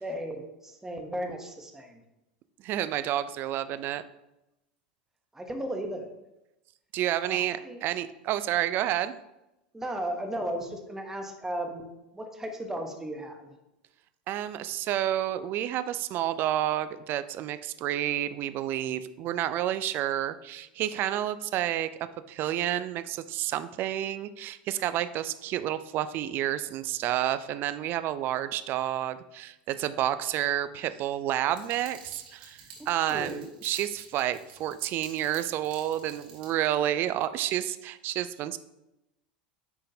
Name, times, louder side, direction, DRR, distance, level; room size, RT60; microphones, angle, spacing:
voice 1, 0.0-2.0 5.3-6.1 7.3-7.8 9.7-13.5 32.8-33.5, right 1 dB, 10° right, 4 dB, 1.1 m, -35 dB
voice 2, 2.6-4.0 6.9-9.2 14.3-21.9 22.3-38.6, right 12 dB, 45° right, 12 dB, 0.4 m, -30 dB
sound 1, 31.5-36.5, right 5 dB, 75° right, 1.7 m, -49 dB
10.0 x 3.8 x 2.8 m, 0.91 s
hypercardioid pair, 85°, 5 cm